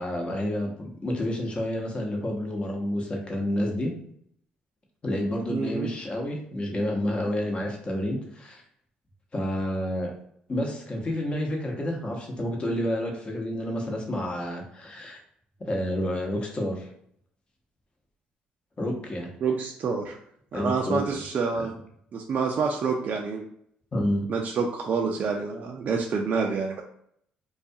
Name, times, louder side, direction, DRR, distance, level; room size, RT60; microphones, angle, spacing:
voice 1, 0.0-3.9 5.0-8.6 9.3-10.1 10.5-15.2 15.7-16.9 18.8-19.3 20.5-21.0 21.5-21.8 23.9-24.2, left 1 dB, 30° left, 0 dB, 0.8 m, -29 dB
voice 2, 5.5-5.9 19.4-20.2 20.5-21.7 22.1-23.5 24.3-26.8, right 5 dB, 50° right, 1 dB, 0.4 m, -27 dB
2.3 x 2.3 x 2.7 m, 0.69 s
supercardioid pair, 75°, 3 cm